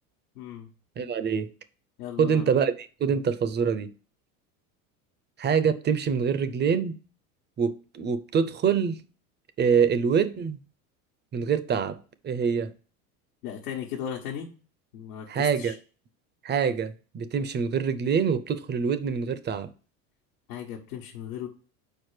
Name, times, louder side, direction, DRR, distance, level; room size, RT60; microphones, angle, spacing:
voice 1, 0.3-0.7 2.0-2.5 13.4-14.5 14.9-15.8 20.5-21.5, left 9 dB, 85° left, 1.3 m, -36 dB
voice 2, 1.0-1.5 2.2-3.9 5.4-7.0 7.6-9.0 9.6-10.6 11.3-12.7 15.3-15.8 16.4-19.7, right 6 dB, 25° right, 0.6 m, -25 dB
4.6 x 4.4 x 4.8 m
supercardioid pair, 100°, 43 cm